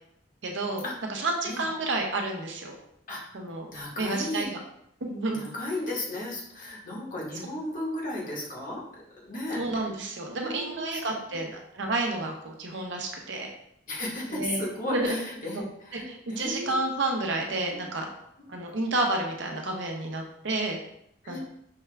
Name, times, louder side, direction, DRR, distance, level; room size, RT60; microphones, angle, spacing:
voice 1, 0.4-2.7 3.3-3.7 4.0-4.5 5.0-5.5 9.5-13.5 14.3-14.6 14.9-15.2 15.5-15.6 15.9-18.1 18.5-20.8 21.3-21.4, right 2 dB, 70° right, 1 dB, 0.7 m, -30 dB
voice 2, 3.7-4.5 5.3-8.8 9.1-9.6 10.4-11.4 13.9-16.9 17.7-17.8 18.4-18.5 21.2-21.4, left 1 dB, 45° left, -4 dB, 1.3 m, -35 dB
5.5 x 2.4 x 3.3 m, 0.75 s
head